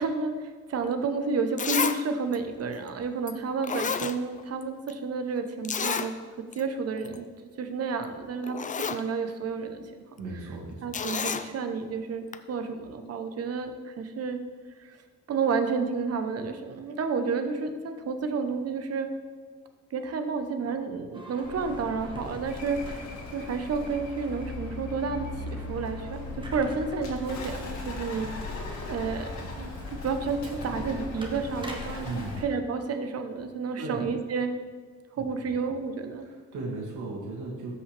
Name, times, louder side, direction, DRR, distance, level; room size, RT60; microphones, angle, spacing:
voice 1, 0.0-7.2 7.6-9.8 10.8-14.4 14.8-15.0 15.3-19.1 19.9-23.0 23.3-28.3 28.9-29.3 29.6-32.1 32.4-34.5 35.2-36.2, right 4 dB, 55° right, 8 dB, 0.9 m, -31 dB
Zipper (clothing), 1.0-1.1 1.6-2.0 2.3-2.4 3.3-3.4 3.6-4.6 4.9-5.0 5.6-6.1 6.5-6.6 7.0-7.2 8.0-8.1 8.4-9.0 10.9-11.5 12.3-12.4, left 6 dB, 25° left, 0.4 m, -30 dB
voice 2, 10.2-10.8 32.0-32.4 33.8-34.0 36.3-37.7, right 3 dB, 80° right, -2 dB, 2.3 m, -36 dB
sound 1, 21.1-32.5, right 1 dB, 15° right, 1.4 m, -46 dB
Bird, 21.4-32.4, left 3 dB, 65° left, 2.0 m, -38 dB
13.0 x 5.5 x 3.4 m, 1.5 s
cardioid pair, 90°, 30 cm